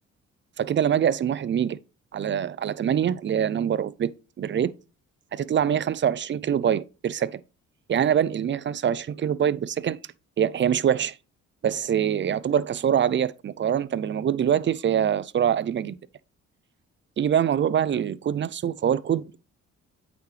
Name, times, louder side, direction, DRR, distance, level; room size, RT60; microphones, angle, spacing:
voice 1, 0.6-1.8 2.1-4.1 4.4-4.7 5.3-7.4 7.9-10.0 10.4-11.2 11.6-16.0 17.2-19.4, right 9 dB, 40° right, 0.5 m, -24 dB
8.6 x 6.1 x 3.2 m
cardioid pair, 90°, 30 cm